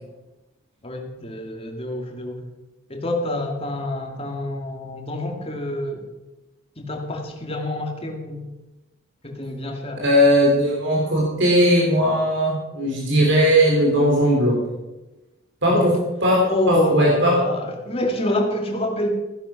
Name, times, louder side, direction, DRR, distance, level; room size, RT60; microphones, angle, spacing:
voice 1, 0.8-2.4 2.9-6.1 6.8-8.4 9.2-10.0 15.6-15.9 16.4-19.1, left 1 dB, 30° left, 2 dB, 2.4 m, -27 dB
voice 2, 10.0-14.6 15.6-15.9 16.2-16.4 16.7-17.3, equal, 60° right, -2 dB, 3.6 m, -18 dB
16.0 x 10.5 x 6.0 m, 1.1 s
head